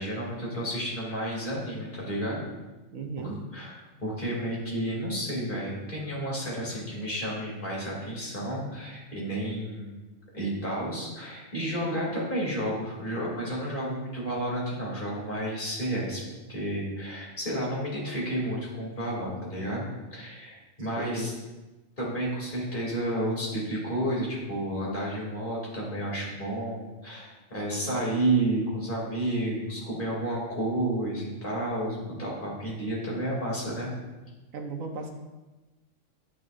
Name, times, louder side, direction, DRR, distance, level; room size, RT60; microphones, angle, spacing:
voice 1, 0.0-2.4 3.2-3.7 4.0-9.9 10.3-16.2 16.5-21.3 22.0-33.9, right 1 dB, 35° left, -5 dB, 3.0 m, -31 dB
voice 2, 2.9-3.4 21.0-21.3 34.5-35.1, right 3 dB, 75° right, 4 dB, 1.3 m, -35 dB
9.4 x 8.9 x 2.6 m, 1.2 s
omnidirectional pair, 1.4 m